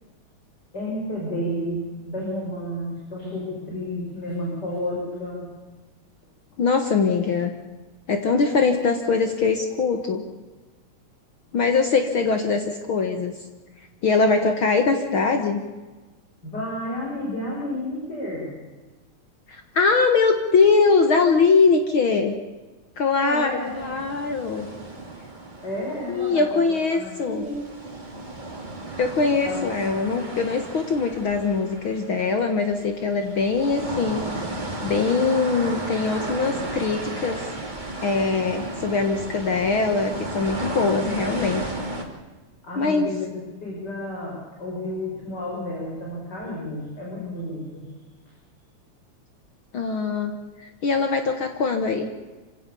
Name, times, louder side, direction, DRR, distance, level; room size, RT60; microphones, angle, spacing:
voice 1, 0.7-5.5 16.4-18.5 23.2-23.7 25.6-27.6 29.5-29.6 42.6-47.9, left 1 dB, 35° left, -3 dB, 5.9 m, -31 dB
voice 2, 6.6-7.5 8.1-10.3 11.5-13.4 14.0-15.6 19.5-22.3 23.0-24.7 26.1-27.4 29.0-34.5 34.8-37.5 38.0-41.7 42.8-43.1 49.7-52.1, left 4 dB, 50° left, 6 dB, 1.9 m, -22 dB
sound 1, 23.6-27.1 27.4-42.0, right 2 dB, 15° right, 2.4 m, -34 dB
27.0 x 17.0 x 7.0 m, 1.3 s
omnidirectional pair, 3.4 m